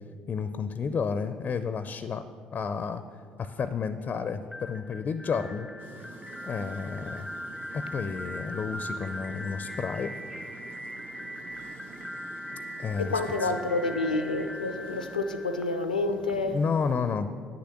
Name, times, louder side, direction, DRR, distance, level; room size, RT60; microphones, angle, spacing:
voice 1, 0.3-3.0 3.4-5.7 6.4-7.3 7.7-10.1 12.8-13.5 16.3-17.3, left 5 dB, 40° left, 0.5 m, -31 dB
sound 1, 4.5-16.3, left 1 dB, 5° right, 0.8 m, -40 dB
sound 2, 5.8-15.2, right 4 dB, 45° right, 1.0 m, -48 dB
voice 2, 13.0-16.6, left 3 dB, 90° left, 0.5 m, -29 dB
9.5 x 6.8 x 7.6 m
figure-of-eight pair, 50°, 4 cm